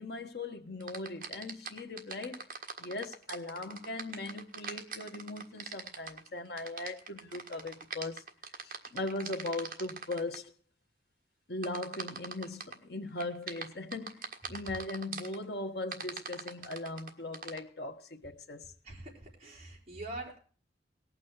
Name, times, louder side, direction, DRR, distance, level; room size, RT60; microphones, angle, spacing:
voice 1, 0.0-2.5 2.8-8.2 8.6-10.5 11.5-18.7, left 2 dB, 60° left, 1.2 m, -39 dB
sound 1, 0.8-10.4 11.6-12.8 13.2-15.4 15.9-17.6, right 5 dB, 50° right, 1.6 m, -42 dB
voice 2, 18.8-20.4, right 2 dB, 35° right, 4.6 m, -44 dB
18.5 x 6.2 x 7.9 m
head